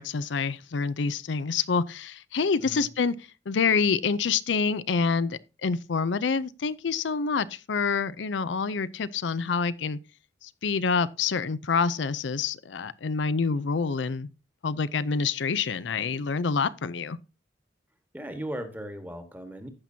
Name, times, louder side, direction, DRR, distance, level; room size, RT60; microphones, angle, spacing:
voice 1, 0.0-3.1 3.5-10.0 10.4-14.3 14.6-17.2, left 5 dB, 80° left, 0.5 m, -27 dB
voice 2, 18.1-19.7, equal, 10° right, 1.4 m, -37 dB
15.0 x 5.9 x 2.7 m
head